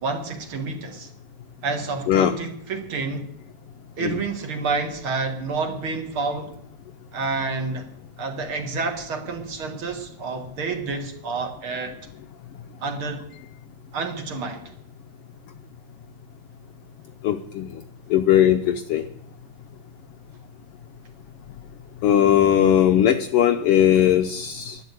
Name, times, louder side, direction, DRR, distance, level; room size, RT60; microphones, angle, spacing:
voice 1, 0.0-1.1 1.6-3.3 4.0-6.5 7.1-7.9 8.2-11.9 12.8-13.3 13.9-14.7, right 4 dB, 50° right, 5 dB, 2.1 m, -29 dB
voice 2, 17.2-17.7 18.1-19.1 22.0-24.8, left 10 dB, 80° left, 7 dB, 1.3 m, -19 dB
11.5 x 11.0 x 8.2 m, 0.73 s
omnidirectional pair, 3.3 m